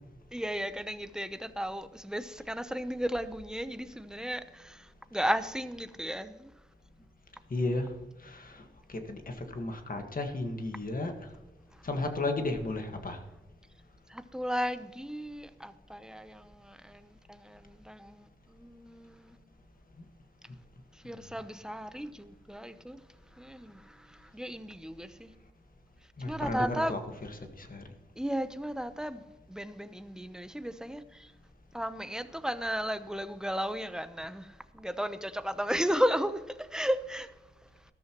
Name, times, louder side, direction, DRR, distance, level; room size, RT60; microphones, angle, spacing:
voice 1, 0.3-6.5 14.1-19.4 21.0-23.0 23.4-25.3 26.2-26.9 28.2-29.2 29.5-31.3 31.7-37.3, equal, 5° right, 0.8 m, -34 dB
voice 2, 7.5-7.9 8.2-8.6 8.9-11.1 11.8-13.2 26.2-27.0 27.6-27.8, left 2 dB, 50° left, 1.7 m, -33 dB
13.5 x 13.0 x 3.1 m
wide cardioid pair, 80°, 18 cm